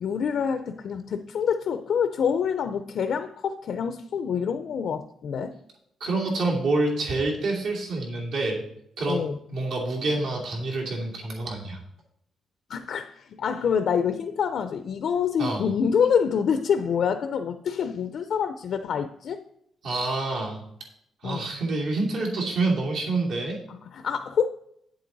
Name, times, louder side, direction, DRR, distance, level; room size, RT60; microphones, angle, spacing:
voice 1, 0.0-5.5 9.1-9.4 12.7-19.4 21.2-21.5 23.7-24.5, left 7 dB, 60° left, 9 dB, 0.5 m, -26 dB
voice 2, 6.0-8.6 9.0-9.2 9.5-11.8 15.4-15.6 19.8-20.6 21.2-23.6, right 2 dB, 70° right, -2 dB, 2.8 m, -27 dB
9.1 x 7.7 x 4.0 m, 0.74 s
cardioid pair, 145°, 0 cm